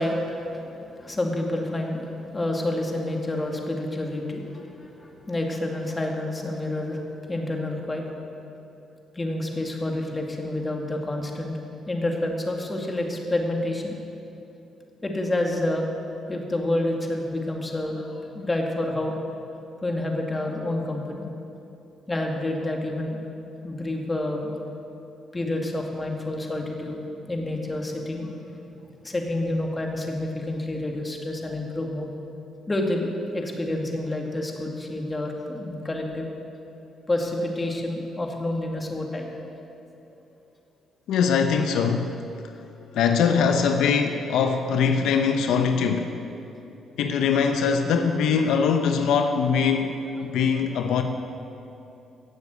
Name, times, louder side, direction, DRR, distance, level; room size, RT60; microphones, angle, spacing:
voice 1, 0.0-8.2 9.1-11.5 11.9-14.0 15.0-15.9 16.3-19.2 19.8-21.2 22.1-23.2 23.6-24.5 25.3-28.6 29.0-32.1 32.7-33.1 33.3-36.3 37.1-39.3, left 1 dB, 20° left, 1 dB, 2.2 m, -28 dB
voice 2, 41.1-42.1 42.9-46.2 47.0-50.0 50.3-51.0, left 6 dB, 80° left, 6 dB, 0.8 m, -22 dB
16.5 x 7.2 x 8.2 m, 2.9 s
cardioid pair, 90°, 0 cm